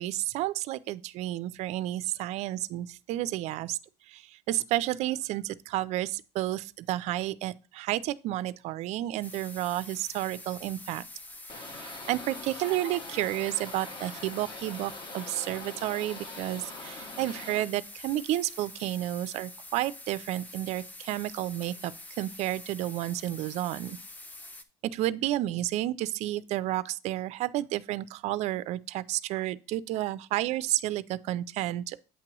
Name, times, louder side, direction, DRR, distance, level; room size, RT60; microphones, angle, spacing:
voice 1, 0.0-3.8 4.1-11.0 11.5-11.8 12.1-24.0 24.8-32.0, right 15 dB, 55° right, 0.4 m, -31 dB
sound 1, 9.2-24.6, left 2 dB, 10° left, 0.5 m, -46 dB
sound 2, 11.5-17.6, left 3 dB, 35° left, 1.4 m, -43 dB
8.4 x 2.9 x 6.0 m
cardioid pair, 140°, 14 cm